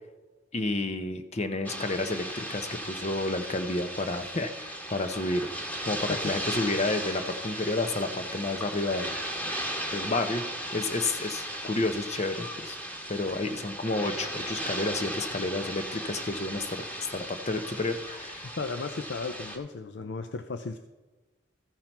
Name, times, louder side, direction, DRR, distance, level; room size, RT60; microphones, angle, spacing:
voice 1, 0.5-5.6 5.9-9.2 9.9-10.4 10.7-12.8 13.1-18.5, left 2 dB, 40° left, 8 dB, 0.8 m, -30 dB
sound 1, 1.6-19.6, equal, 10° left, 1.4 m, -36 dB
voice 2, 18.6-20.8, left 4 dB, 75° left, 8 dB, 0.5 m, -35 dB
14.5 x 5.7 x 4.5 m, 1.2 s
head